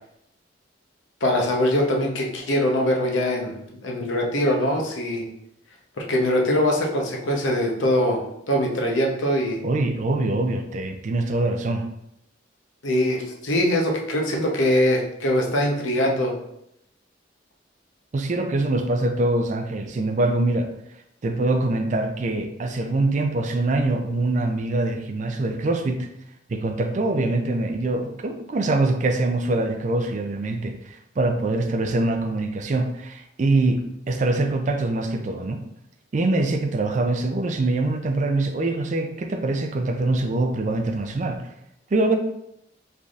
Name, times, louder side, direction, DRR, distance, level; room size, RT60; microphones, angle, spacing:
voice 1, 1.2-3.5 3.8-5.3 6.0-8.2 8.5-9.6 12.8-16.4, left 1 dB, 85° left, 0 dB, 0.8 m, -22 dB
voice 2, 9.6-11.9 18.1-20.7 21.2-26.1 26.5-35.6 36.1-41.5 41.9-42.2, right 2 dB, 40° right, 6 dB, 0.4 m, -24 dB
4.0 x 3.3 x 2.4 m, 0.80 s
head